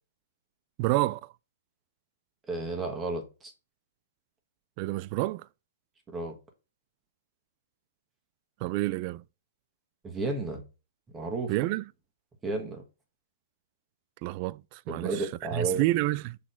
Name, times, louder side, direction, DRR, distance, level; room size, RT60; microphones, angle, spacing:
voice 1, 0.8-1.2 4.8-5.5 8.6-9.2 11.5-11.8 14.2-16.4, right 19 dB, 35° right, 0.3 m, -29 dB
voice 2, 2.5-3.5 6.1-6.4 10.0-10.6 11.1-11.5 12.4-12.8 14.9-15.8, right 3 dB, 10° right, 1.3 m, -32 dB
6.1 x 4.0 x 4.3 m
hypercardioid pair, 155°, 0 cm